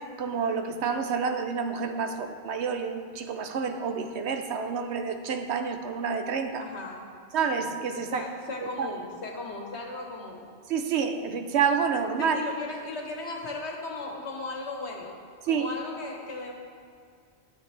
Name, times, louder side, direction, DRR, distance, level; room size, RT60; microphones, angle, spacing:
voice 1, 0.2-6.7 7.3-8.3 8.6-8.9 10.7-12.4 15.4-15.7, right 6 dB, 85° right, 7 dB, 1.0 m, -28 dB
voice 2, 6.6-7.0 8.1-10.5 12.2-16.5, left 3 dB, 90° left, 0 dB, 1.6 m, -37 dB
12.5 x 7.9 x 3.3 m, 2.2 s
omnidirectional pair, 1.1 m